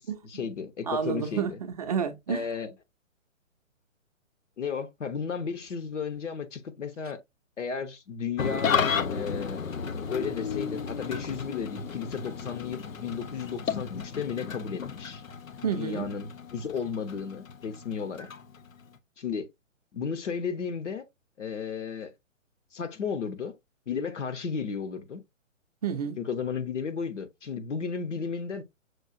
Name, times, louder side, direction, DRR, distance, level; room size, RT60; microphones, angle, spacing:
voice 1, 0.0-1.6 2.3-2.7 4.6-7.2 7.6-8.8 9.1-9.6 10.1-15.2 15.7-18.3 19.2-19.5 19.9-21.0 21.4-22.1 22.7-23.5 23.9-25.2 26.2-28.6, left 6 dB, 65° left, 1.0 m, -34 dB
voice 2, 0.9-2.5 15.6-16.0 25.8-26.2, right 7 dB, 30° right, 0.5 m, -30 dB
Engine starting / Idling, 8.4-19.0, left 6 dB, 85° left, 0.7 m, -33 dB
6.3 x 2.4 x 2.6 m
figure-of-eight pair, 135°, 39 cm